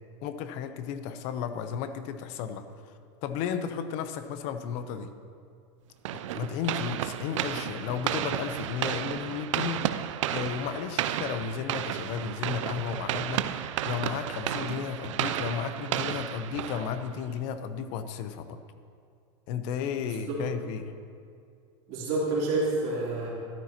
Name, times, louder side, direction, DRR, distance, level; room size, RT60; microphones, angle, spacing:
voice 1, 0.2-2.7 3.2-5.1 6.3-13.5 13.8-18.6 19.5-20.9, left 7 dB, 45° left, 10 dB, 0.8 m, -34 dB
sound 1, 6.0-17.3, right 11 dB, 85° right, 0.5 m, -32 dB
voice 2, 19.9-20.4 21.9-23.3, right 2 dB, 45° right, -6 dB, 3.3 m, -29 dB
13.5 x 12.5 x 2.9 m, 2.3 s
supercardioid pair, 145°, 16 cm